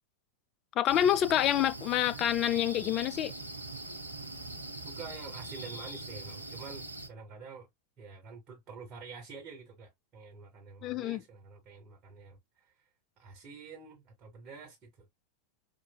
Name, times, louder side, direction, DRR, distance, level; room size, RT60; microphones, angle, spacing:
voice 1, 0.8-3.3 10.8-11.2, left 11 dB, 35° left, 0.3 m, -27 dB
sound 1, 0.9-7.1, right 2 dB, 85° right, 0.6 m, -42 dB
voice 2, 4.8-7.7 8.0-12.7 13.2-14.9, right 5 dB, 35° right, 1.3 m, -48 dB
4.6 x 2.4 x 2.2 m
figure-of-eight pair, 90°, 0 cm